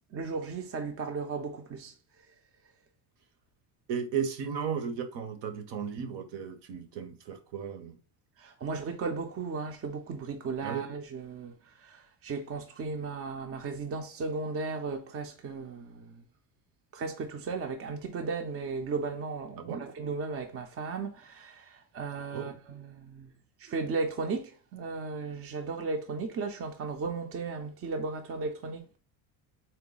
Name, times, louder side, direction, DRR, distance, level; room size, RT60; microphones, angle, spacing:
voice 1, 0.1-1.9 8.4-16.2 16.9-23.3 23.6-29.0, right 4 dB, 30° right, 0.5 m, -35 dB
voice 2, 3.9-8.0 10.6-10.8 19.6-19.9 22.3-22.5, right 7 dB, 60° right, 0.8 m, -35 dB
3.9 x 2.1 x 3.9 m
cardioid pair, 125°, 49 cm